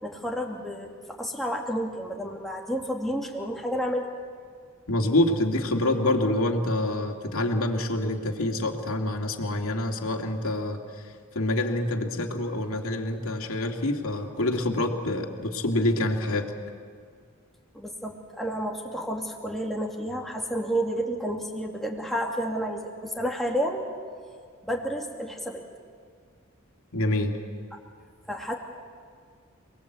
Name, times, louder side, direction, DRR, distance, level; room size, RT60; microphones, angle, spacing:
voice 1, 0.0-0.9 1.2-4.1 17.7-23.9 24.6-25.6 28.3-28.5, equal, ahead, 0 dB, 2.5 m, -30 dB
voice 2, 4.9-16.5 26.9-27.3, left 1 dB, 75° left, 3 dB, 2.4 m, -26 dB
28.5 x 20.5 x 8.2 m, 2.1 s
head